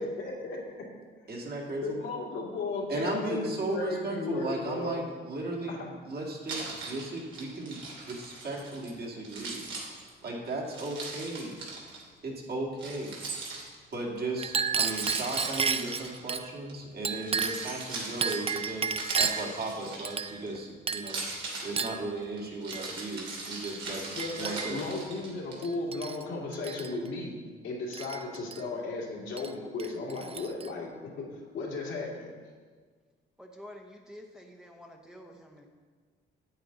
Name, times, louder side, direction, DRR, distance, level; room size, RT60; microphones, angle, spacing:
voice 1, 0.0-0.6 1.8-5.0 5.7-5.9 24.2-30.9 31.2-32.3, left 3 dB, 80° left, -3 dB, 2.4 m, -35 dB
voice 2, 1.3-2.0 2.9-9.7 10.2-11.6 12.2-13.2 13.9-21.2 21.6-24.8, right 2 dB, 50° right, -2 dB, 2.2 m, -36 dB
Keys jangling, 6.5-8.9 9.2-12.0 12.8-14.0 14.8-16.7 17.1-20.5 21.0-25.5, right 3 dB, 75° right, 2.6 m, -40 dB
Chink clink, 14.4-16.4 17.0-17.7 18.2-19.5 20.0-20.6 20.9-21.2 21.8-22.0 22.7-22.9 23.6-23.8 24.2-24.9 25.6-26.2 26.5-26.9 27.9-28.6 29.4-29.5 29.8-30.7, right 6 dB, 30° right, 0.4 m, -32 dB
voice 3, 33.4-35.7, left 1 dB, 5° right, 1 dB, 0.9 m, -49 dB
8.8 x 8.7 x 3.9 m, 1.5 s
cardioid pair, 90°, 20 cm